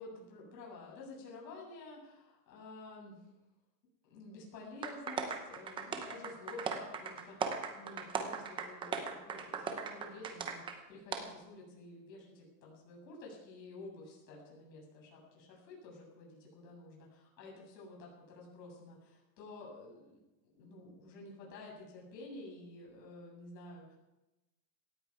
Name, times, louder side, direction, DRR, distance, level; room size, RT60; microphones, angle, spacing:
voice 1, 0.0-3.3 4.0-23.9, left 2 dB, 80° left, -2 dB, 7.7 m, -51 dB
sound 1, 4.8-10.8 11.1-11.2, right 6 dB, 10° right, 0.7 m, -38 dB
17.5 x 14.5 x 4.8 m, 0.98 s
supercardioid pair, 175°, 50 cm